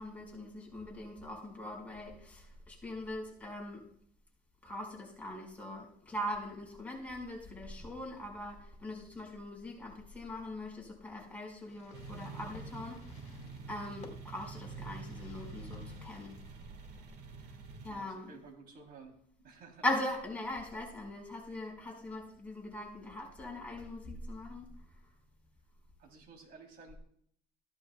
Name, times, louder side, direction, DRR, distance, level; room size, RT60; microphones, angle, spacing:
voice 1, 0.0-3.8 4.6-13.4 13.7-16.4 17.8-18.3 19.8-24.7, left 1 dB, 10° left, -1 dB, 4.8 m, -41 dB
Fireworks, 11.6-17.2, left 5 dB, 40° left, 2.6 m, -58 dB
sound 1, 11.9-17.9, right 4 dB, 85° right, 1.6 m, -47 dB
voice 2, 17.9-19.1 19.4-19.9 26.0-27.0, right 4 dB, 60° right, 2 dB, 3.2 m, -53 dB
15.5 x 12.0 x 2.3 m, 0.63 s
cardioid pair, 110°, 17 cm